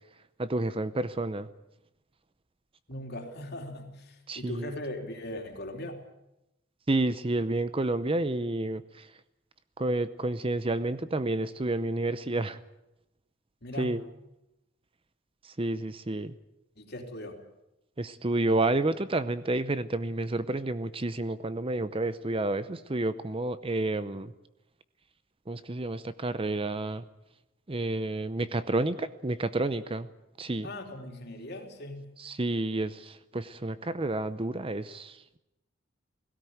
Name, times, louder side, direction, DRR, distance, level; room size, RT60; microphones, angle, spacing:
voice 1, 0.4-1.5 4.3-4.7 6.9-9.1 9.8-12.6 13.8-14.0 15.4-16.3 18.0-24.3 25.5-27.0 27.7-30.1 30.4-30.7 32.2-35.4, right 2 dB, 25° right, 13 dB, 0.7 m, -30 dB
voice 2, 2.9-6.0 13.6-14.0 16.7-17.4 30.6-32.1, left 1 dB, 50° left, 3 dB, 3.3 m, -39 dB
18.0 x 17.0 x 9.4 m, 0.89 s
head